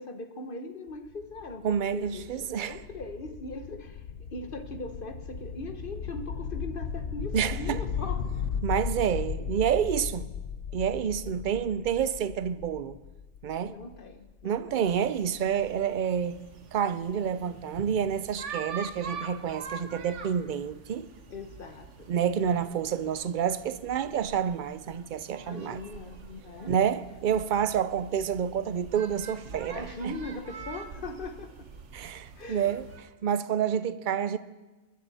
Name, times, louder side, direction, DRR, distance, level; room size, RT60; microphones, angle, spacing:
voice 1, 0.0-8.3 13.7-14.8 21.3-22.1 25.4-26.7 29.7-31.7 32.4-32.8, left 2 dB, 50° left, 1.2 m, -40 dB
sound 1, 0.9-14.6, left 7 dB, 85° left, 1.1 m, -36 dB
voice 2, 1.6-2.8 7.3-7.8 8.6-10.3 10.7-13.0 13.4-13.7 14.4-16.4 16.7-21.1 22.1-25.8 26.7-30.1 31.9-32.8 33.2-34.4, right 8 dB, 55° right, 0.6 m, -28 dB
sound 2, 14.8-33.0, right 5 dB, 90° right, 1.3 m, -45 dB
22.0 x 10.5 x 4.1 m
omnidirectional pair, 1.2 m